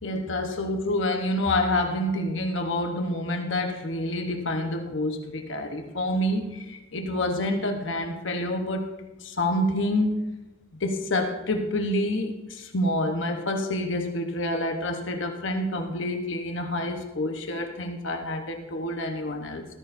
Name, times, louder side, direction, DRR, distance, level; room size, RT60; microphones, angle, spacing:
voice 1, 0.0-8.9 9.2-10.2 10.8-19.6, left 1 dB, 70° left, 4 dB, 1.0 m, -28 dB
14.0 x 13.0 x 2.6 m, 1.1 s
head